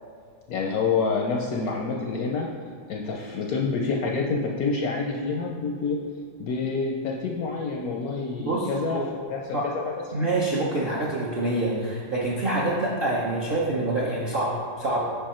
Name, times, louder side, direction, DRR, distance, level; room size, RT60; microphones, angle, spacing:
voice 1, 0.5-2.5 2.9-6.0 6.4-9.0 9.3-9.8, left 4 dB, 70° left, 0 dB, 0.9 m, -27 dB
voice 2, 8.4-9.0 9.5-9.7 10.1-15.0, right 2 dB, 60° right, -5 dB, 0.5 m, -26 dB
5.6 x 5.0 x 4.3 m, 2.2 s
omnidirectional pair, 2.0 m